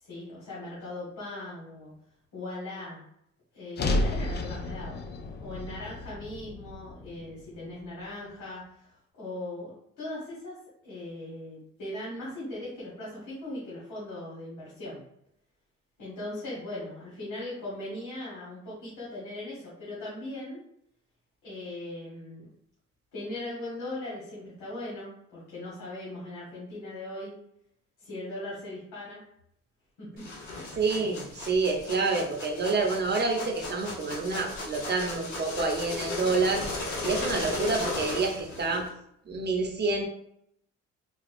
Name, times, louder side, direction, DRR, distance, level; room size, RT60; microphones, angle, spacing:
voice 1, 0.0-1.9 2.3-3.0 3.5-5.0 5.4-10.5 10.8-15.0 16.0-20.6 21.4-22.4 23.1-27.3 28.0-29.2 30.0-30.8, left 1 dB, 90° left, -7 dB, 1.4 m, -39 dB
sound 1, 3.8-8.0, left 2 dB, 35° left, 0.4 m, -32 dB
sound 2, 30.2-38.9, left 2 dB, 70° left, 1.2 m, -36 dB
voice 2, 30.8-36.6 37.0-38.8 39.3-40.0, right 3 dB, 35° right, 2 dB, 0.8 m, -28 dB
4.1 x 2.3 x 2.6 m, 0.73 s
cardioid pair, 90°, 30 cm